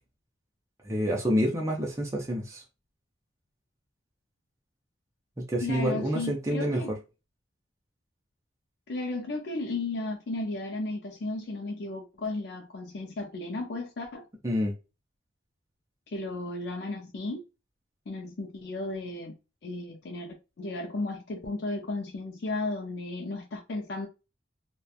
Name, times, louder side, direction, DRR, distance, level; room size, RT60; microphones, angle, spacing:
voice 1, 0.8-2.6 5.4-6.8 14.4-14.7, equal, 15° right, 0.5 m, -28 dB
voice 2, 5.6-6.9 8.9-14.3 16.1-17.4 18.1-19.3 19.6-24.1, left 2 dB, 55° left, 0.4 m, -34 dB
2.8 x 2.2 x 2.3 m
head